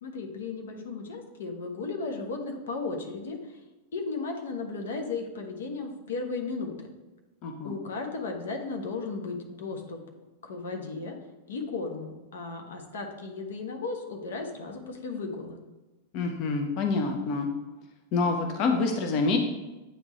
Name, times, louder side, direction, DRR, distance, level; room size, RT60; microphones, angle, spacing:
voice 1, 0.0-3.6 3.9-6.9 7.6-10.0 10.4-11.2 11.5-15.6, left 4 dB, 75° left, 3 dB, 0.9 m, -35 dB
voice 2, 7.4-7.7 16.1-17.5 18.1-19.4, left 3 dB, 50° left, 4 dB, 0.7 m, -27 dB
8.7 x 3.7 x 3.1 m, 1.1 s
hypercardioid pair, 110°, 0 cm